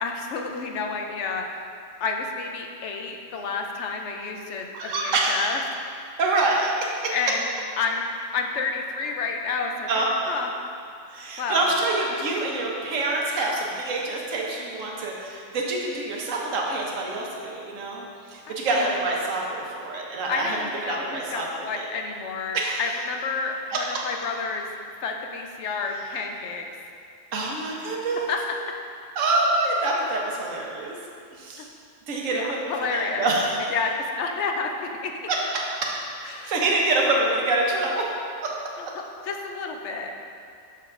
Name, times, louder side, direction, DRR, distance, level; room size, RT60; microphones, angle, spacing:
voice 1, 0.0-1.6 2.0-5.6 7.1-7.4 7.8-8.0 8.3-9.9 10.3-10.5 11.4-11.7 18.5-18.6 20.3-24.7 25.0-26.6 28.1-28.5 31.6-31.7 32.3-33.3 33.7-35.3 36.2-36.5 38.8-40.3, left 4 dB, 70° left, 2 dB, 0.9 m, -30 dB
voice 2, 4.7-5.5 6.2-6.7 7.0-7.1 9.9-10.3 11.1-20.6 20.9-21.9 22.5-22.8 23.7-23.8 27.3-28.3 29.2-30.9 31.3-31.7 32.1-33.5 35.3-35.6 36.2-38.0 38.4-38.5, right 2 dB, 80° right, -2 dB, 1.3 m, -26 dB
6.9 x 6.6 x 2.5 m, 2.4 s
omnidirectional pair, 1.3 m